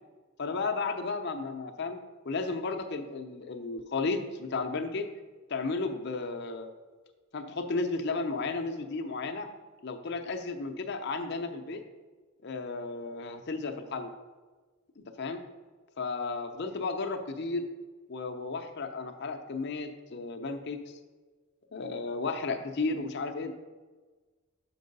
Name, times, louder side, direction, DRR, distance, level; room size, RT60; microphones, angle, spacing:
voice 1, 0.4-5.1 5.5-6.7 7.3-9.5 9.8-11.8 12.4-14.1 15.0-15.4 16.0-17.7 18.1-20.8 21.7-23.5, left 3 dB, 50° left, 6 dB, 0.6 m, -33 dB
6.0 x 4.6 x 5.3 m, 1.3 s
head